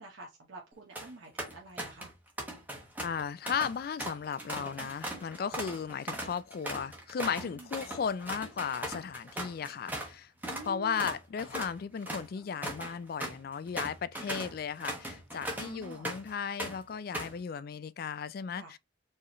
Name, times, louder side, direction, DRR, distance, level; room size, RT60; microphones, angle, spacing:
voice 1, 0.0-2.1 4.8-5.1 7.5-7.7 10.5-11.0 14.2-14.3 15.5-16.1 18.5-18.7, right 2 dB, 80° right, 0.9 m, -48 dB
sound 1, 0.7-1.1 1.4-2.1 2.4-10.1 10.4-10.7 11.0-16.3 16.6-17.4, right 1 dB, 10° right, 1.1 m, -39 dB
voice 2, 3.0-10.3 10.6-18.8, left 6 dB, 50° left, 0.3 m, -35 dB
4.5 x 3.1 x 3.0 m
head